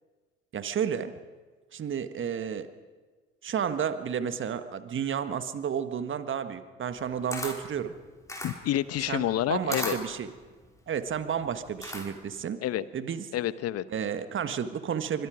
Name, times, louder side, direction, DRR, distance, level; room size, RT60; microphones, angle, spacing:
voice 1, 0.5-1.1 1.7-2.7 3.4-7.9 9.1-10.3 10.9-12.6 12.9-13.3 13.9-15.3, right 8 dB, 40° right, 11 dB, 1.6 m, -31 dB
Camera, 6.9-12.4, left 1 dB, 10° left, 5.0 m, -38 dB
voice 2, 8.4-10.0 12.6-12.8 13.3-13.8, left 12 dB, 50° left, 16 dB, 1.1 m, -28 dB
25.5 x 24.5 x 5.1 m, 1.4 s
figure-of-eight pair, 55°, 32 cm